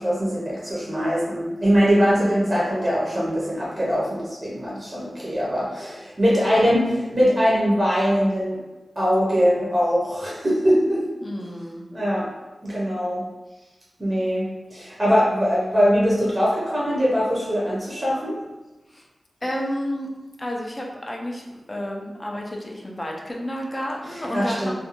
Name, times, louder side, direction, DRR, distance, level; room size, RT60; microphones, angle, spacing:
voice 1, 0.0-8.6 9.0-11.0 11.9-12.3 12.6-13.2 14.0-14.5 14.7-18.4 24.1-24.7, equal, 25° right, -6 dB, 0.6 m, -22 dB
voice 2, 2.1-2.6 6.3-6.7 11.2-11.8 18.9-19.1 19.4-20.1 20.4-24.7, equal, 20° left, -1 dB, 0.4 m, -31 dB
2.4 x 2.1 x 2.8 m, 1.1 s
wide cardioid pair, 120°, 0 cm